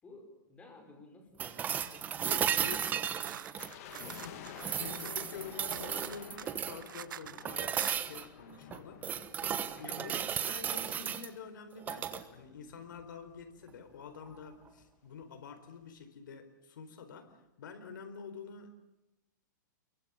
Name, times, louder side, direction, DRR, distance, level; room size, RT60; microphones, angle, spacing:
voice 1, 0.0-3.4 9.7-10.4, left 2 dB, 10° left, 5 dB, 5.0 m, -54 dB
sound 1, 1.4-4.2 4.6-6.9 7.4-8.2 8.7-11.3 11.8-12.2 14.3-14.4, right 9 dB, 15° right, 1.2 m, -35 dB
sound 2, 2.0-5.4 5.7-7.4 7.7-8.0, right 10 dB, 85° right, 0.9 m, -46 dB
voice 2, 2.2-2.8 3.3-3.4 4.2-17.3 17.6-18.8, left 5 dB, 75° left, 7 dB, 4.4 m, -47 dB
sound 3, 3.5-10.8 11.1-11.2 11.8-13.7 13.9-14.0 14.2-14.5 15.0-15.1, left 10 dB, 45° left, 2.7 m, -51 dB
29.0 x 23.0 x 7.3 m, 0.94 s
hypercardioid pair, 160°, 11 cm